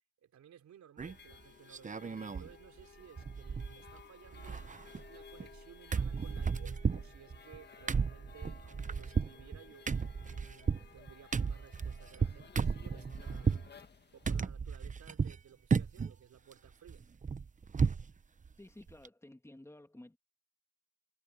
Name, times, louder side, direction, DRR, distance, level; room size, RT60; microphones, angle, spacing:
voice 1, 0.2-4.6 5.1-9.9 10.3-13.7 14.1-17.0, right 9 dB, 65° right, 3.7 m, -58 dB
sound 1, 1.0-14.4, left 6 dB, 35° left, 2.2 m, -56 dB
sound 2, 1.0-1.3 1.7-2.5 2.8-2.9 3.2-4.0 4.3-5.6 5.9-13.7 14.3-15.4 15.7-16.2 16.5-18.1 18.4-18.5 18.9-19.1, right 5 dB, 25° right, 0.9 m, -34 dB
voice 2, 18.6-20.2, left 1 dB, 10° left, 2.8 m, -53 dB
cardioid pair, 90°, 30 cm